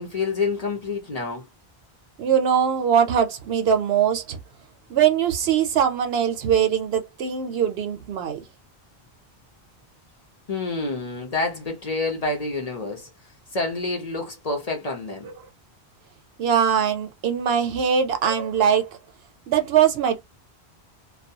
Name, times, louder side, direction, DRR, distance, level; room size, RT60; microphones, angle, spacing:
voice 1, 0.0-1.5 10.5-13.1 13.5-15.3, left 3 dB, 40° left, 0.8 m, -28 dB
voice 2, 2.2-4.4 4.9-8.4 15.2-15.5 16.4-19.0 19.5-20.2, right 8 dB, 75° right, 0.8 m, -21 dB
2.3 x 2.2 x 2.6 m
omnidirectional pair, 1.1 m